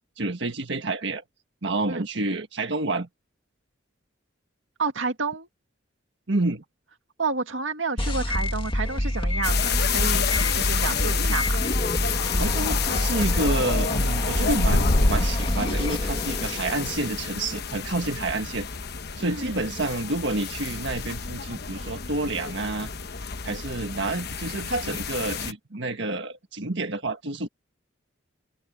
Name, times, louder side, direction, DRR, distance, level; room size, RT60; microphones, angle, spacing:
voice 1, 0.2-1.2 1.6-3.1 6.3-6.6 12.4-18.7 19.2-22.9 23.4-27.5, right 2 dB, 65° right, 1.6 m, -29 dB
voice 2, 4.8-5.5 7.2-11.6 19.2-19.6, right 4 dB, 85° right, 2.1 m, -30 dB
sound 1, 8.0-17.0, left 1 dB, 30° left, 2.1 m, -27 dB
sound 2, 9.4-25.5, left 5 dB, 55° left, 1.1 m, -29 dB
open air
head